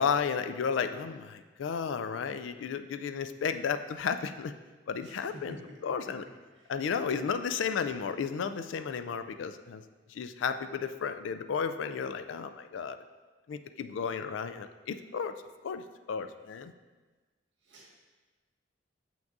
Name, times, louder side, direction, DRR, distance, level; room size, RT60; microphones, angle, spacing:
voice 1, 0.0-4.5 4.9-5.6 5.8-6.2 6.7-9.8 10.1-13.0 13.5-15.3 15.6-16.7, left 6 dB, 80° left, 10 dB, 0.3 m, -33 dB
voice 2, 5.0-5.8 6.0-6.1 6.5-6.7 17.6-18.0, right 1 dB, 70° right, -4 dB, 1.7 m, -50 dB
7.5 x 5.9 x 2.6 m, 1.3 s
head